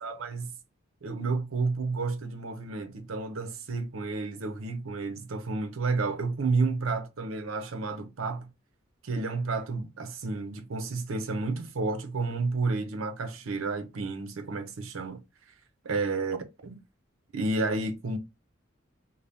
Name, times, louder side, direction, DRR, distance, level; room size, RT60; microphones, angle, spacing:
voice 1, 0.0-0.5 1.0-8.5 9.0-15.2 15.8-16.4 16.6-16.7 17.3-18.2, right 3 dB, 85° right, 0.6 m, -31 dB
2.7 x 2.2 x 3.3 m
head